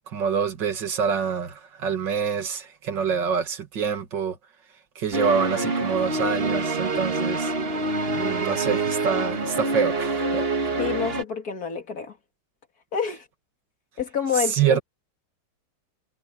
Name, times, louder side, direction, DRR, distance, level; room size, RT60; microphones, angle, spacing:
voice 1, 0.1-4.4 5.0-7.5 8.1-10.4 14.5-14.8, right 7 dB, 85° right, 2.6 m, -26 dB
sound 1, 5.1-11.2, right 2 dB, 35° right, 1.7 m, -26 dB
voice 2, 10.8-12.2 12.9-13.3 14.0-14.8, left 7 dB, 55° left, 2.9 m, -28 dB
omnidirectional pair, 1.9 m